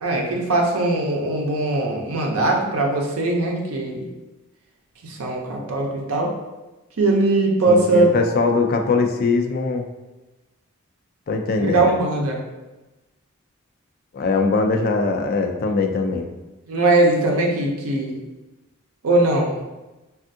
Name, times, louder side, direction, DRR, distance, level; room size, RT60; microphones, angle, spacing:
voice 1, 0.0-4.1 5.0-6.3 7.0-8.1 11.6-12.4 16.7-18.2 19.0-19.5, right 2 dB, 90° right, 0 dB, 0.6 m, -20 dB
voice 2, 7.7-9.8 11.3-11.9 14.1-16.3, left 3 dB, 45° left, 3 dB, 0.3 m, -21 dB
3.4 x 2.4 x 2.6 m, 1.1 s
head